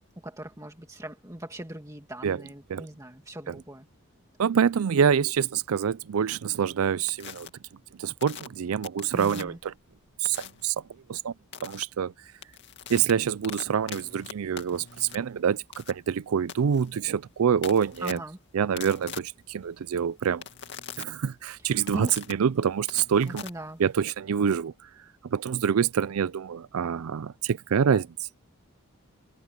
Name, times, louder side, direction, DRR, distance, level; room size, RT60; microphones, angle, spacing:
voice 1, 0.2-3.9 9.1-9.6 18.0-18.4 21.6-22.2 23.3-23.8, right 1 dB, 15° right, 2.4 m, -39 dB
voice 2, 4.4-7.5 8.0-9.7 10.2-10.7 11.1-11.3 11.6-12.1 12.9-18.2 18.5-20.4 21.0-23.4 23.8-24.7 25.3-28.1, right 7 dB, 85° right, 0.4 m, -26 dB
sound 1, 7.1-7.5 8.2-9.7 10.3-10.7 11.5-11.8 12.3-24.2, left 7 dB, 55° left, 2.4 m, -43 dB
head